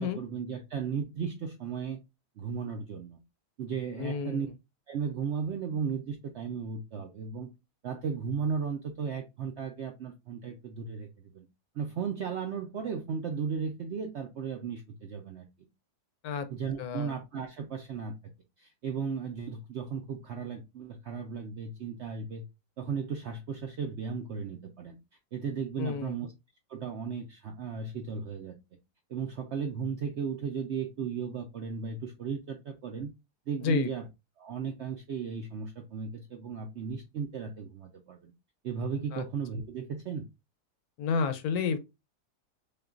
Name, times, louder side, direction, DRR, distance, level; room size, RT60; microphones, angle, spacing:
voice 1, 0.0-2.0 2.4-3.2 3.6-4.5 4.9-7.5 7.8-11.5 11.7-15.5 16.5-18.1 18.6-22.5 22.8-25.0 25.3-26.3 26.7-28.5 29.1-33.1 33.5-34.1 34.4-38.3 38.6-40.3, right 6 dB, 70° right, 0.6 m, -35 dB
voice 2, 4.0-4.5 16.2-16.5 16.8-17.1 25.8-26.1 33.6-33.9 39.1-39.2 41.0-41.8, left 5 dB, 75° left, 1.0 m, -30 dB
6.6 x 2.3 x 2.4 m
omnidirectional pair, 1.8 m